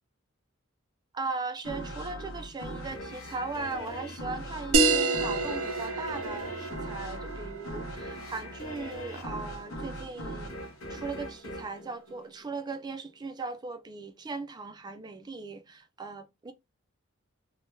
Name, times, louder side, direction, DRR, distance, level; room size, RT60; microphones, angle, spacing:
voice 1, 1.1-10.5 10.9-16.5, right 3 dB, 20° right, 0.3 m, -38 dB
sound 1, 1.6-12.8, equal, 85° left, 0.7 m, -40 dB
sound 2, 4.7-9.8, right 3 dB, 85° right, 0.4 m, -29 dB
2.1 x 2.1 x 3.1 m
head